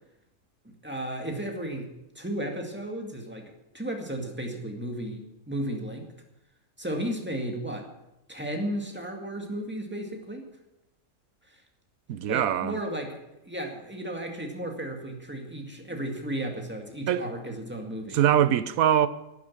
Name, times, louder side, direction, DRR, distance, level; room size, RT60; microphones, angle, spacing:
voice 1, 0.6-1.9 2.2-6.1 6.8-7.9 8.3-10.5 12.3-18.2, right 1 dB, 5° right, 2.1 m, -34 dB
voice 2, 12.1-12.8 17.1-17.3 18.1-19.1, right 10 dB, 80° right, 1.1 m, -22 dB
12.0 x 10.0 x 7.3 m
omnidirectional pair, 1.5 m